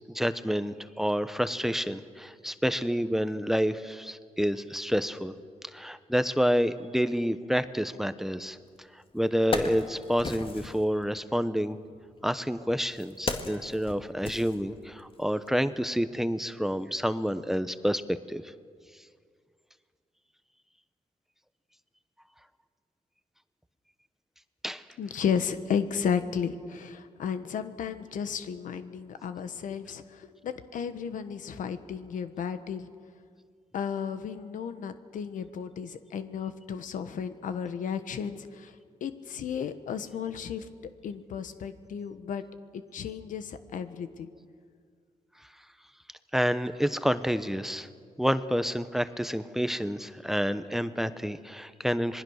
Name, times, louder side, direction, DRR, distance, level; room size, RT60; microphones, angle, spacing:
voice 1, 0.1-5.3 5.7-8.6 9.1-11.8 12.2-18.5 24.6-24.8 46.3-47.9 48.2-52.2, equal, 5° right, 12 dB, 1.0 m, -28 dB
Wood, 8.7-8.8 9.2-10.8 11.8-15.1 15.5-15.6, left 3 dB, 45° left, 2.1 m, -36 dB
voice 2, 25.0-32.9 33.7-38.7 39.0-40.7 41.0-42.4 42.7-44.3, left 7 dB, 85° left, 10 dB, 1.3 m, -33 dB
26.0 x 20.5 x 6.5 m, 2.1 s
cardioid pair, 80°, 13 cm